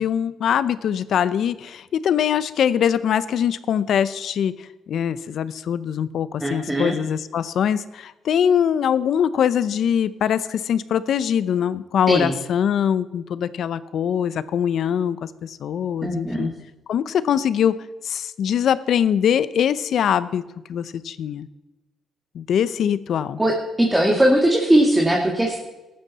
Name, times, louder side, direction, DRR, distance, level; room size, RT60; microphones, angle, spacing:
voice 1, 0.0-16.5 16.9-20.4 20.7-21.5 22.3-23.4, left 8 dB, 65° left, 16 dB, 0.7 m, -22 dB
voice 2, 6.4-6.9 12.1-12.3 16.0-16.5 23.4-25.6, right 1 dB, 10° right, 0 dB, 2.0 m, -19 dB
15.0 x 11.0 x 4.2 m, 1.1 s
cardioid pair, 90°, 0 cm